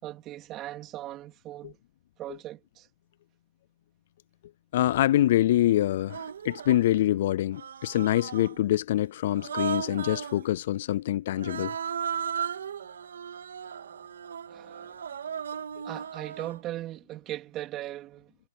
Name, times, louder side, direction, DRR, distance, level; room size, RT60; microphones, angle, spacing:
voice 1, 0.0-1.8 2.2-2.9 14.5-15.0 15.8-18.5, right 14 dB, 20° right, 3.4 m, -39 dB
voice 2, 4.7-11.8, left 13 dB, 45° left, 0.4 m, -25 dB
Human voice, 4.9-5.0 6.0-6.9 7.5-8.6 9.3-10.4 11.3-16.6, right 8 dB, 75° right, 2.0 m, -36 dB
hypercardioid pair, 155°, 0 cm